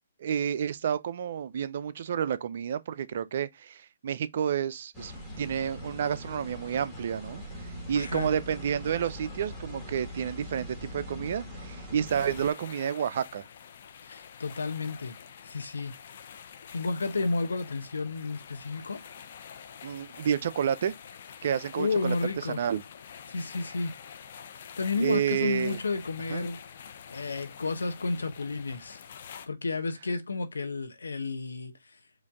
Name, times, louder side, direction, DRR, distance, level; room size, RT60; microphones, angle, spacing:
voice 1, 0.2-7.4 7.9-13.4 19.8-20.9 21.4-22.2 22.5-22.8 25.0-25.8 26.3-26.5, right 8 dB, 50° right, 0.4 m, -30 dB
sound 1, 4.9-12.5, left 1 dB, 10° left, 1.6 m, -42 dB
voice 2, 7.9-8.3 14.0-15.1 15.5-15.9 16.7-19.0 21.8-22.6 23.3-23.9 24.8-26.6 27.1-29.0 29.5-31.7, left 3 dB, 85° left, 1.0 m, -31 dB
sound 2, 12.0-29.5, left 7 dB, 50° left, 0.6 m, -47 dB
5.1 x 2.6 x 3.4 m
hypercardioid pair, 150°, 0 cm